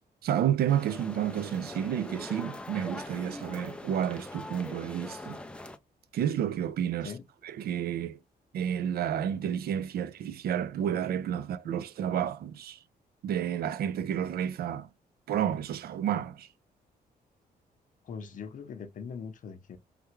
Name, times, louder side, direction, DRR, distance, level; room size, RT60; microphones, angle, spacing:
voice 1, 0.2-5.4 6.1-7.1 7.4-8.2 8.5-12.8 13.2-14.9 15.3-16.5, right 9 dB, 70° right, 0.4 m, -30 dB
sound 1, 0.7-5.8, left 2 dB, 5° left, 0.4 m, -42 dB
voice 2, 18.0-19.8, left 6 dB, 55° left, 0.6 m, -41 dB
3.3 x 2.3 x 3.0 m
cardioid pair, 105°, 16 cm